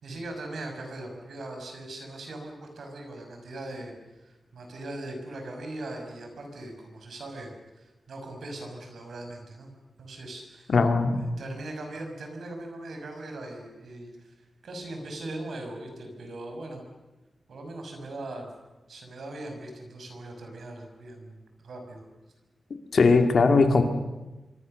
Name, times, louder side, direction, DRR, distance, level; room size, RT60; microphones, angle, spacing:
voice 1, 0.0-7.5 7.8-9.7 10.0-10.7 11.2-14.3 14.6-16.9 17.5-18.5 18.9-22.0, right 2 dB, 75° right, 3 dB, 5.9 m, -40 dB
voice 2, 10.7-11.2 22.9-23.8, left 4 dB, 55° left, 6 dB, 2.6 m, -19 dB
26.0 x 24.5 x 6.7 m, 1.1 s
wide cardioid pair, 165°, 0 cm